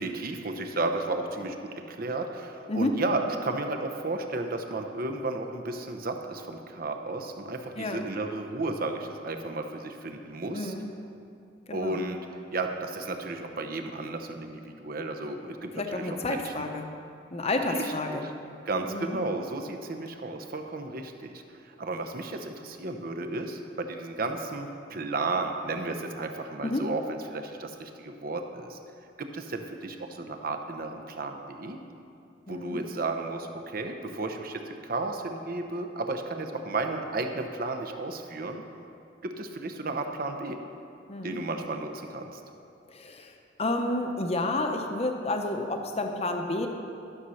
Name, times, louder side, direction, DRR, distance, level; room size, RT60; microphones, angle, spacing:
voice 1, 0.0-1.6 1.9-10.7 11.7-12.3 12.5-16.5 17.7-18.2 18.7-28.8 29.2-31.8 32.5-38.6 39.2-40.6 41.2-42.4, right 2 dB, 50° right, 5 dB, 0.8 m, -33 dB
voice 2, 7.8-8.1 10.5-10.9 11.7-12.0 15.8-16.9 17.3-18.3 18.9-19.2 26.6-26.8 32.5-32.8 41.1-41.4 42.9-46.7, left 2 dB, 35° left, 4 dB, 0.8 m, -30 dB
12.5 x 6.4 x 5.6 m, 2.6 s
head